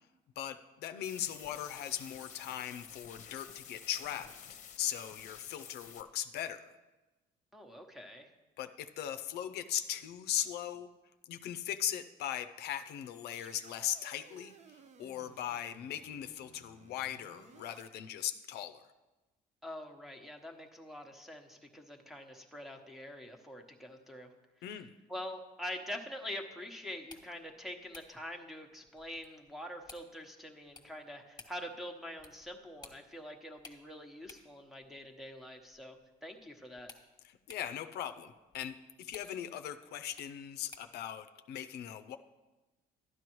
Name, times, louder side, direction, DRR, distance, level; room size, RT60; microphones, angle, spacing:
voice 1, 0.4-6.7 8.6-10.9 11.3-18.8 24.6-24.9 37.2-42.2, left 11 dB, 75° left, 10 dB, 0.5 m, -39 dB
sound 1, 1.0-6.0, left 7 dB, 45° left, 0.8 m, -51 dB
voice 2, 7.5-8.3 19.6-24.3 25.1-36.9, left 1 dB, ahead, 3 dB, 1.0 m, -45 dB
sound 2, 12.6-17.9, right 6 dB, 45° right, 0.6 m, -59 dB
sound 3, 26.9-41.0, left 4 dB, 25° left, 1.2 m, -59 dB
12.0 x 9.3 x 3.1 m, 1.1 s
cardioid pair, 110°, 17 cm